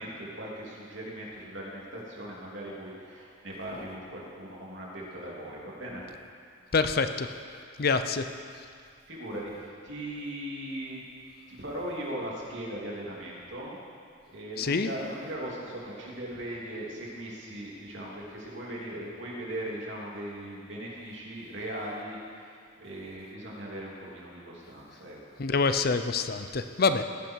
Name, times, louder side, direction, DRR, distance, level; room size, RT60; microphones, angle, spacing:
voice 1, 0.0-6.0 9.1-11.0 11.5-13.8 14.2-25.2, right 1 dB, 65° right, -4 dB, 3.1 m, -39 dB
voice 2, 6.7-7.3 7.8-8.3 14.6-14.9 25.4-27.0, left 4 dB, 50° left, 9 dB, 0.6 m, -26 dB
17.5 x 10.5 x 4.7 m, 2.3 s
head